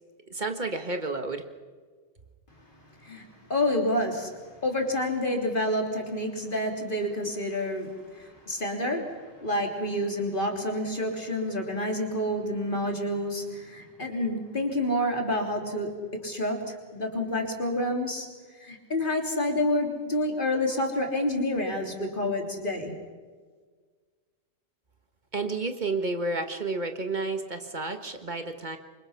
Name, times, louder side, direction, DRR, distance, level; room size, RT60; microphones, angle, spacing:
voice 1, 0.3-1.4 25.3-28.8, right 3 dB, 40° right, 6 dB, 1.7 m, -31 dB
voice 2, 3.0-4.3 4.6-18.3 18.6-23.0, left 1 dB, 45° left, 1 dB, 3.6 m, -29 dB
28.0 x 24.5 x 5.9 m, 1.5 s
omnidirectional pair, 1.2 m